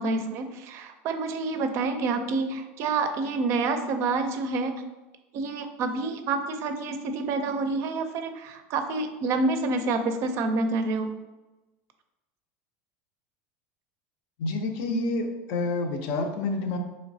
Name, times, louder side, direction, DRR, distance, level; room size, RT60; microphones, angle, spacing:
voice 1, 0.0-4.7 5.3-11.1, right 3 dB, 50° right, 7 dB, 0.4 m, -28 dB
voice 2, 14.4-16.8, left 2 dB, 65° left, 5 dB, 0.5 m, -28 dB
3.9 x 3.1 x 2.6 m, 1.1 s
supercardioid pair, 135°, 6 cm